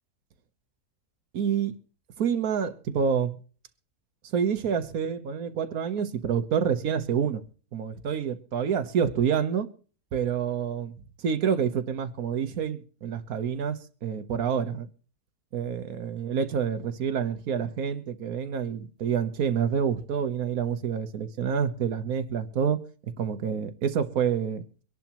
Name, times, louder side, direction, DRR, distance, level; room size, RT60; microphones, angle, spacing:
voice 1, 1.3-1.7 2.2-3.4 4.2-7.4 7.7-9.7 10.1-14.9 15.5-22.8 23.2-24.6, right 7 dB, 65° right, 1.5 m, -28 dB
24.0 x 11.0 x 3.0 m
omnidirectional pair, 1.7 m